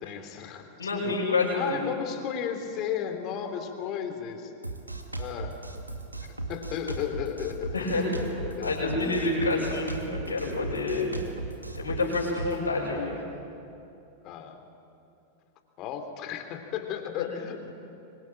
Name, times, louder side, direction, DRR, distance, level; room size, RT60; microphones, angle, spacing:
voice 1, 0.0-1.2 1.6-4.5 5.1-5.5 6.2-8.9 14.2-14.6 15.8-17.7, left 8 dB, 40° left, 6 dB, 3.3 m, -34 dB
voice 2, 0.8-1.8 7.7-8.1 8.6-11.2 11.7-13.2, left 3 dB, 75° left, -4 dB, 6.7 m, -28 dB
Drum kit, 4.6-12.6, right 3 dB, 85° right, 2.3 m, -37 dB
25.5 x 25.0 x 9.0 m, 2.8 s
figure-of-eight pair, 90°, 0 cm